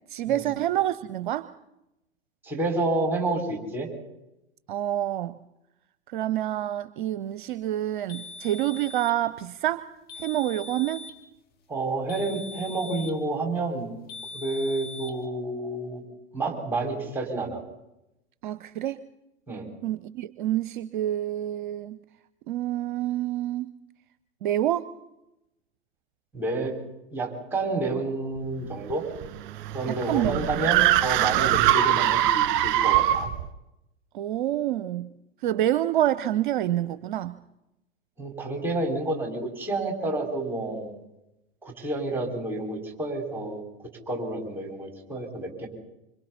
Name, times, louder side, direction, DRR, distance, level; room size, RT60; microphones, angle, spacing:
voice 1, 0.1-1.5 4.7-5.4 6.1-9.9 10.2-11.0 18.4-19.0 19.8-22.0 22.5-23.7 24.4-24.9 29.9-30.7 34.1-35.1 35.4-37.4, right 13 dB, 55° right, 14 dB, 0.7 m, -27 dB
voice 2, 2.4-3.9 11.7-14.0 14.3-16.0 16.3-17.6 19.5-19.7 26.3-26.7 27.1-29.1 29.7-33.3 38.2-40.9 41.6-45.7, right 2 dB, 5° right, 1 dB, 5.3 m, -29 dB
sound 1, 8.1-9.2 10.1-11.2 12.1-13.2 14.1-15.2, left 3 dB, 30° left, 2.2 m, -41 dB
sound 2, 28.9-33.4, right 13 dB, 40° right, 1.6 m, -22 dB
26.0 x 26.0 x 4.2 m, 0.92 s
figure-of-eight pair, 90°, 31 cm